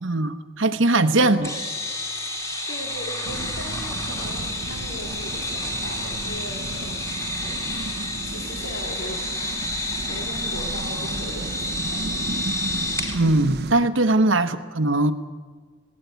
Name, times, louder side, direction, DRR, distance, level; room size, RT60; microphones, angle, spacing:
voice 1, 0.0-1.5 13.1-15.1, right 2 dB, 75° right, 8 dB, 1.0 m, -20 dB
voice 2, 1.2-1.5 2.7-8.0 8.2-12.4 14.4-14.5, equal, 75° left, 1 dB, 2.5 m, -39 dB
sound 1, 1.4-13.2, left 1 dB, 15° left, 2.8 m, -30 dB
sound 2, 3.2-13.7, right 2 dB, 50° right, 0.7 m, -34 dB
19.0 x 17.0 x 9.3 m, 1.5 s
head